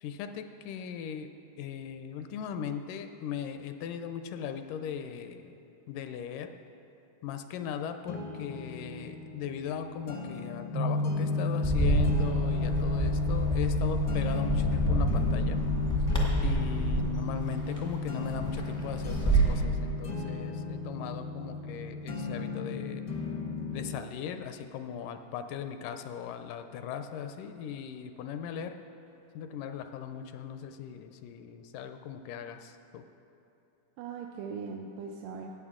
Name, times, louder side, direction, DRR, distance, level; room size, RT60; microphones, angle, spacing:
voice 1, 0.0-1.3 1.6-5.5 5.9-6.5 7.2-15.6 16.4-23.0 23.7-28.7 29.4-33.0, left 8 dB, 80° left, 8 dB, 2.0 m, -38 dB
sound 1, 8.1-24.1, left 4 dB, 65° left, 1.0 m, -39 dB
sound 2, 10.7-23.0, left 2 dB, 55° right, 1.6 m, -33 dB
Bird, 11.6-19.6, right 1 dB, 5° left, 0.3 m, -28 dB
voice 2, 16.7-17.3 34.0-35.5, right 5 dB, 80° right, 1 dB, 2.1 m, -41 dB
15.0 x 9.3 x 3.6 m, 2.8 s
omnidirectional pair, 3.9 m